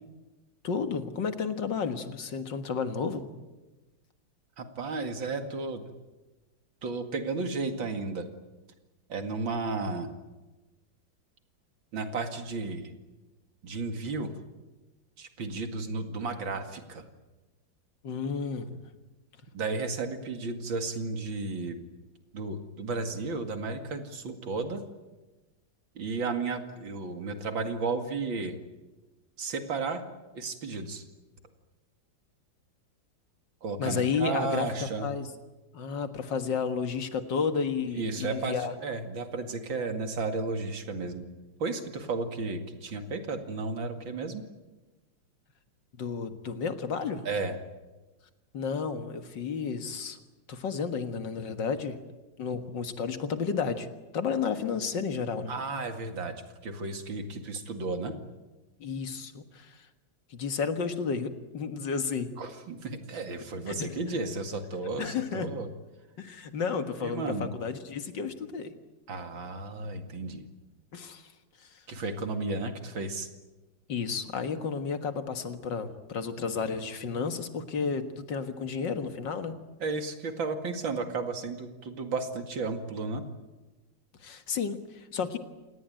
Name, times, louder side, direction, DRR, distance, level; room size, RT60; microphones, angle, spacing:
voice 1, 0.6-3.2 18.0-18.7 33.8-35.3 35.7-38.7 46.0-47.3 48.5-50.2 50.5-52.0 52.4-53.9 54.1-55.5 58.8-59.8 60.3-62.3 63.7-64.0 65.0-65.5 66.2-68.7 70.9-71.3 71.6-71.7 73.9-79.5 84.2-85.4, left 5 dB, 70° left, 8 dB, 2.3 m, -32 dB
voice 2, 4.6-5.9 6.8-8.3 9.1-10.1 11.9-12.9 13.6-14.3 15.2-17.0 19.5-21.8 22.3-24.8 26.0-28.6 29.4-30.0 30.3-31.0 33.6-35.1 38.0-41.3 41.6-44.4 47.2-47.5 55.5-58.1 62.4-65.7 67.0-67.5 69.1-70.4 71.9-73.3 79.8-83.2, right 3 dB, 85° right, 6 dB, 2.9 m, -33 dB
28.0 x 19.0 x 9.1 m, 1.1 s
omnidirectional pair, 2.1 m